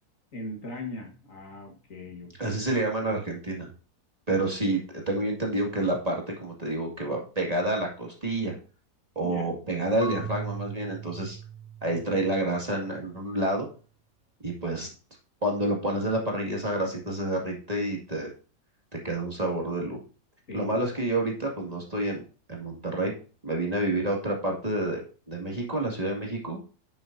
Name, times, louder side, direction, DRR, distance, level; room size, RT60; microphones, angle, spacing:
voice 1, 0.3-2.6 9.2-9.5 20.5-20.8, left 2 dB, 55° left, 3 dB, 2.1 m, -39 dB
voice 2, 2.4-3.7 4.3-8.5 9.2-11.4 11.8-13.7 14.4-14.9 15.4-18.3 19.0-20.0 20.5-22.2 22.5-23.1 23.4-25.0 25.3-26.6, right 1 dB, 25° right, -1 dB, 2.2 m, -28 dB
Marimba xylophone / Wood, 10.0-12.9, right 5 dB, 5° right, 1.9 m, -39 dB
10.5 x 7.3 x 2.7 m, 0.38 s
omnidirectional pair, 1.6 m